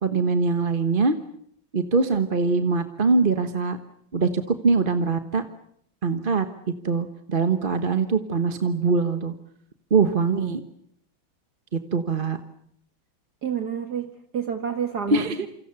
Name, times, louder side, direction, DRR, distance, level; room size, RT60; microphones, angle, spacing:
voice 1, 0.0-1.2 1.7-3.8 4.1-5.4 6.0-6.5 6.8-9.3 9.9-10.6 11.7-12.4 15.1-15.5, right 4 dB, 30° right, 9 dB, 1.2 m, -22 dB
voice 2, 13.4-15.3, right 7 dB, 55° right, 7 dB, 2.2 m, -29 dB
28.0 x 26.0 x 6.9 m, 0.69 s
omnidirectional pair, 2.1 m